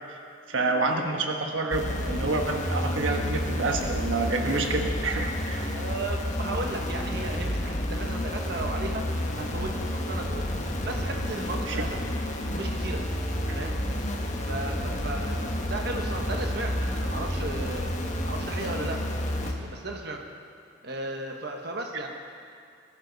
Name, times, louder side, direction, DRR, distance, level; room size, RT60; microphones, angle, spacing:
voice 1, 0.5-5.8 11.7-11.8 13.5-13.6, right 3 dB, 80° right, 3 dB, 1.3 m, -28 dB
sound 1, 1.7-19.5, left 1 dB, 40° left, 1.4 m, -30 dB
voice 2, 5.7-10.5 10.8-12.0 12.5-13.0 13.5-13.8 14.5-18.0 18.2-19.1 19.4-20.3 20.8-22.1, right 2 dB, 55° right, 2 dB, 1.3 m, -35 dB
21.0 x 14.0 x 4.1 m, 2.4 s
head